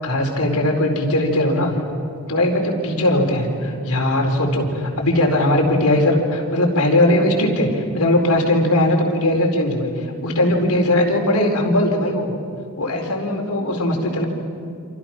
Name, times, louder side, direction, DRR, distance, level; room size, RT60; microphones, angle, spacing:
voice 1, 0.0-1.8 2.3-12.3 12.8-14.3, left 1 dB, 80° left, 1 dB, 4.5 m, -19 dB
28.0 x 28.0 x 6.1 m, 2.4 s
head